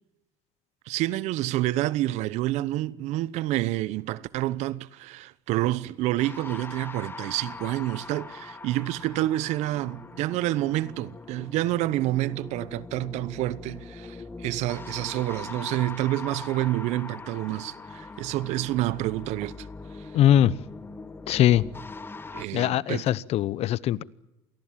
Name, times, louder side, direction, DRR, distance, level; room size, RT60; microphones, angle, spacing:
voice 1, 0.9-19.7 20.0-20.1 22.3-23.1, right 16 dB, 70° right, 0.9 m, -28 dB
sound 1, 6.2-22.5, left 3 dB, 20° left, 1.5 m, -41 dB
voice 2, 20.1-20.5 21.3-21.6 22.5-24.0, left 12 dB, 60° left, 0.9 m, -21 dB
27.0 x 19.0 x 7.5 m
supercardioid pair, 100°, 12 cm